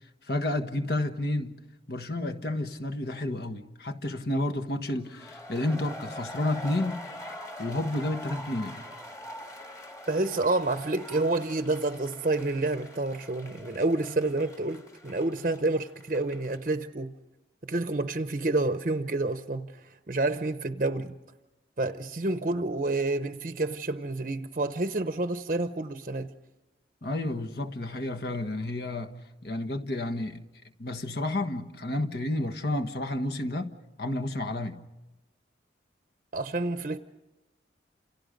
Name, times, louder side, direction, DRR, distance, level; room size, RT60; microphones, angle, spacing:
voice 1, 0.3-1.6 1.9-7.0 7.6-8.8 27.0-29.1 29.4-30.4 30.8-34.8, left 1 dB, 60° left, 1.5 m, -31 dB
sound 1, 5.0-16.7, left 1 dB, 15° left, 2.0 m, -44 dB
voice 2, 10.1-17.1 17.7-21.2 21.8-26.3 36.3-37.0, right 2 dB, 45° right, 0.7 m, -29 dB
29.5 x 28.0 x 5.2 m
head